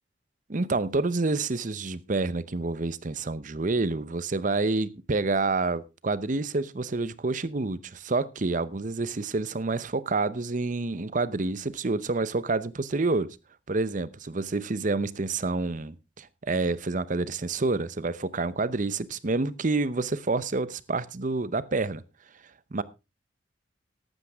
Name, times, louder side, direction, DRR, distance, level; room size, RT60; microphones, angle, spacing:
voice 1, 0.5-13.4 13.7-22.0 22.7-22.8, right 3 dB, 45° right, 0.7 m, -28 dB
14.0 x 11.5 x 3.5 m
head